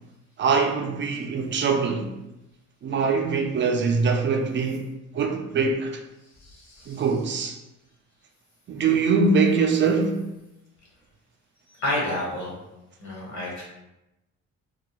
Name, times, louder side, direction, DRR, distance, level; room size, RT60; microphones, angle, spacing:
voice 1, 0.4-2.1 2.8-4.9 5.1-6.0 6.9-7.6 8.7-10.2, right 4 dB, 40° right, 0.4 m, -23 dB
voice 2, 6.4-7.0 11.8-12.5 13.0-13.6, left 1 dB, 65° left, 1.2 m, -30 dB
2.3 x 2.1 x 2.9 m
cardioid pair, 90°, 30 cm